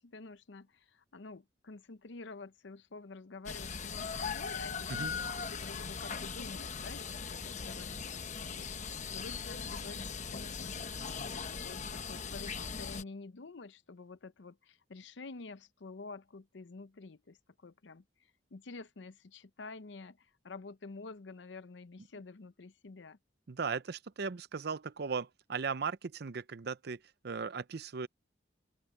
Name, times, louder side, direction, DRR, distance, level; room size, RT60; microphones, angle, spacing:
voice 1, 0.0-23.2, left 3 dB, 80° left, 0.7 m, -49 dB
sound 1, 3.5-13.0, left 5 dB, 40° left, 1.0 m, -39 dB
voice 2, 23.5-28.1, right 5 dB, 60° right, 0.6 m, -37 dB
open air
head